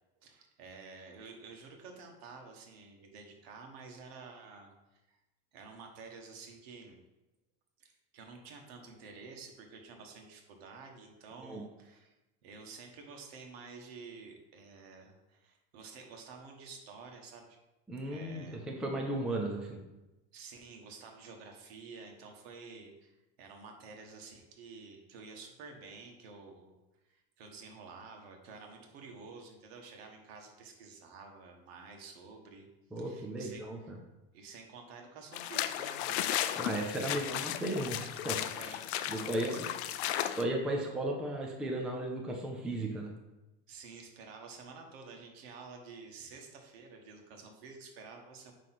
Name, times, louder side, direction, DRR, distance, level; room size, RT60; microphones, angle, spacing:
voice 1, 0.2-5.2 5.5-7.0 7.8-12.1 12.4-17.6 18.0-18.6 20.3-26.8 27.0-32.7 33.0-33.9 34.3-36.8 37.1-37.5 38.5-38.8 39.1-39.7 40.8-40.9 43.7-48.5, right 4 dB, 70° right, 2 dB, 1.7 m, -50 dB
voice 2, 17.9-19.8 32.9-34.0 36.6-38.8 39.1-39.6 40.3-43.1, right 1 dB, ahead, 1 dB, 0.4 m, -35 dB
sound 1, 35.3-40.4, left 12 dB, 90° left, 0.6 m, -35 dB
9.0 x 3.2 x 5.9 m, 1.0 s
supercardioid pair, 175°, 32 cm